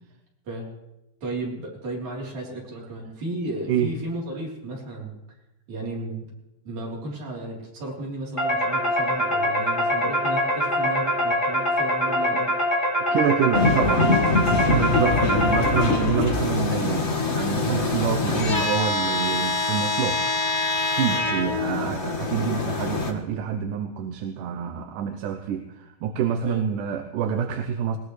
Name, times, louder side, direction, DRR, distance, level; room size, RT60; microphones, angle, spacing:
voice 1, 1.2-5.1 5.7-6.3 6.7-12.5 13.5-14.3 14.8-15.0 21.1-21.3 26.5-26.6, right 2 dB, 60° right, -3 dB, 5.1 m, -33 dB
sound 1, 8.4-16.2, equal, 10° left, 4.5 m, -24 dB
voice 2, 13.1-14.2 14.7-20.2 20.9-28.0, right 8 dB, 75° right, 6 dB, 2.3 m, -27 dB
sound 2, 13.5-23.1, left 3 dB, 80° left, 0.6 m, -24 dB
21.0 x 19.0 x 3.3 m, 0.94 s
omnidirectional pair, 3.9 m